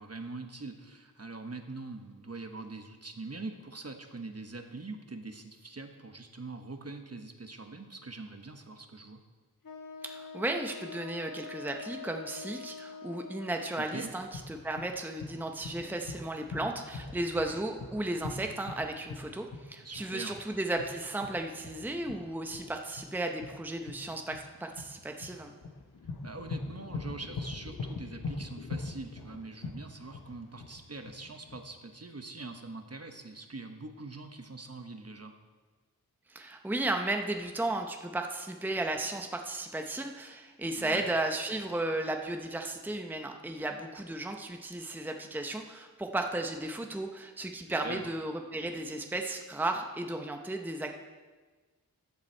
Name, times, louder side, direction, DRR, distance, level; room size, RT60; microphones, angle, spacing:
voice 1, 0.0-9.2 13.9-14.1 19.8-20.4 26.2-35.3 40.8-41.1 47.8-48.1, right 3 dB, 40° right, 6 dB, 1.1 m, -43 dB
Wind instrument woodwind instrument, 9.6-14.1, left 5 dB, 65° left, 1.3 m, -45 dB
voice 2, 10.0-25.5 36.3-50.9, right 2 dB, 5° right, 4 dB, 0.8 m, -34 dB
sound 1, 14.0-31.6, left 3 dB, 90° left, 1.2 m, -41 dB
14.0 x 7.2 x 4.5 m, 1.4 s
wide cardioid pair, 45°, 37 cm